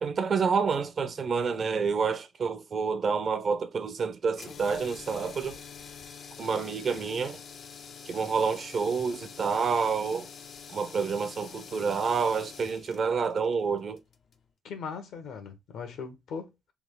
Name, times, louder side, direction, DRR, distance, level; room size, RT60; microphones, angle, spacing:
voice 1, 0.0-5.6 6.4-7.4 8.1-10.3 10.7-14.0, right 5 dB, 50° right, 0.6 m, -28 dB
sound 1, 4.3-14.4, left 6 dB, 60° left, 0.5 m, -46 dB
voice 2, 14.6-16.7, left 5 dB, 75° left, 1.1 m, -39 dB
3.5 x 2.4 x 3.7 m
cardioid pair, 90°, 0 cm